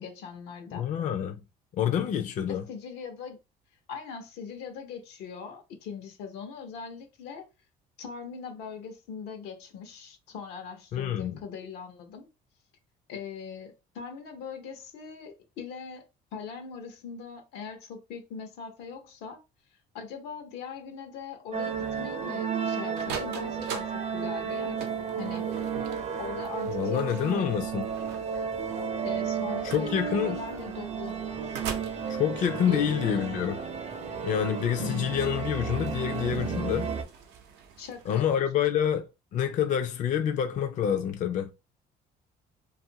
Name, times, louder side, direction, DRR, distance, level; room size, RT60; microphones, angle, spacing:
voice 1, 0.0-0.9 2.5-3.4 3.9-7.5 8.0-12.3 13.1-16.0 16.3-19.4 19.9-24.8 25.2-25.5 26.2-27.5 29.0-31.2 32.7-33.3 34.8-35.5 37.8-38.5, left 6 dB, 90° left, 0.8 m, -41 dB
voice 2, 0.7-1.4 1.8-2.6 10.9-11.4 26.7-27.9 29.6-30.4 32.1-33.6 34.2-36.9 38.1-41.5, left 9 dB, 50° left, 0.4 m, -27 dB
sound 1, 21.5-37.0, right 6 dB, 45° right, 0.6 m, -33 dB
sound 2, 22.9-38.4, right 6 dB, 85° right, 0.6 m, -44 dB
2.6 x 2.4 x 2.7 m
cardioid pair, 110°, 17 cm